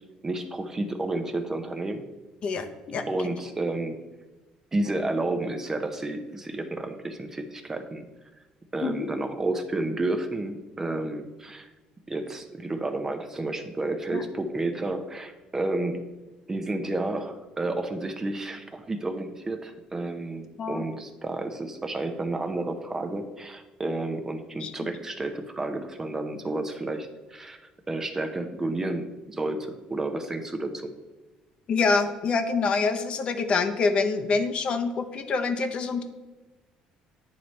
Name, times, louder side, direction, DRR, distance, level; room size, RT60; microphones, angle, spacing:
voice 1, 0.2-2.1 3.1-4.0 4.7-8.1 8.7-11.7 12.1-16.0 16.5-27.6 27.9-30.9, right 2 dB, 20° right, 7 dB, 0.6 m, -31 dB
voice 2, 2.4-3.0 8.8-9.1 14.1-14.2 20.6-20.9 24.6-24.9 31.7-36.0, left 4 dB, 45° left, 7 dB, 0.7 m, -26 dB
9.4 x 3.2 x 4.1 m, 1.2 s
cardioid pair, 115°, 3 cm